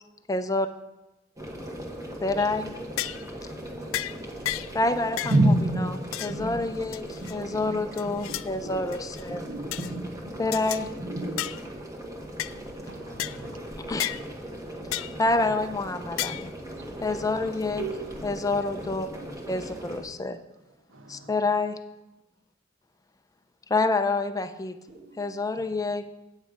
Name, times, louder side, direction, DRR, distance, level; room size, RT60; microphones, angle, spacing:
voice 1, 0.3-0.7 2.2-2.7 4.7-5.3 6.2-9.4 10.4-10.9 13.9-14.1 15.2-16.5 17.0-17.8 18.2-19.1 19.5-20.4 21.1-21.8 23.7-24.8 25.2-26.1, left 3 dB, 20° left, 8 dB, 0.5 m, -27 dB
sound 1, 1.4-20.0, equal, 15° right, 1.4 m, -39 dB
sound 2, 2.4-2.6 3.0-3.3 3.9-4.1 4.4-4.7 5.2-5.4 6.1-6.4 6.9-7.4 8.0-8.5 8.9-9.2 9.7-9.9 10.5-10.8 11.4-11.6 12.4-12.5 13.2-13.4 14.0-14.2 14.9-15.2 16.2-16.5, left 14 dB, 90° left, 0.3 m, -32 dB
voice 2, 5.2-5.9 6.3-6.6 7.2-7.7 8.3-8.8 9.3-10.3 11.0-11.4 19.2-19.4 20.1-20.2 24.9-25.3, right 1 dB, 55° right, -1 dB, 1.4 m, -28 dB
voice 3, 12.9-13.6 14.1-14.2 15.4-15.6 16.7-16.9 17.8-18.2 20.9-21.5, right 7 dB, 80° right, 5 dB, 1.0 m, -41 dB
8.8 x 8.2 x 5.0 m, 0.98 s
head